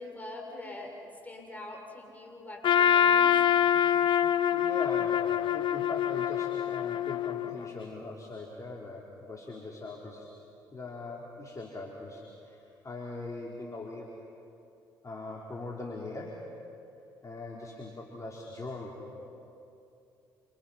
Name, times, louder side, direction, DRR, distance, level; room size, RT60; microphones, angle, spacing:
voice 1, 0.0-3.4 19.2-19.3, left 2 dB, 15° left, 0 dB, 6.5 m, -43 dB
Trumpet, 2.6-7.7, left 9 dB, 55° left, 0.8 m, -25 dB
voice 2, 4.5-10.3 10.7-14.1 15.0-16.4 17.2-19.0, left 2 dB, 35° left, -1 dB, 4.0 m, -41 dB
28.5 x 28.5 x 5.9 m, 2.7 s
hypercardioid pair, 50°, 10 cm